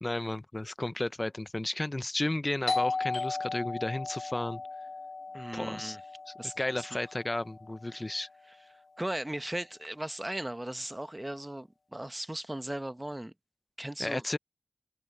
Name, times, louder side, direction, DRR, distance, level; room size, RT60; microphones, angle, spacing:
voice 1, 0.0-4.6 5.5-6.0 6.3-8.3 14.0-14.4, left 2 dB, 30° left, 0.7 m, -33 dB
Doorbell, 2.7-8.1, left 3 dB, 75° left, 0.3 m, -36 dB
voice 2, 5.3-6.0 6.4-7.0 7.9-8.0 9.0-13.3 13.8-14.2, right 1 dB, 20° right, 1.1 m, -37 dB
open air
wide cardioid pair, 60°, 0 cm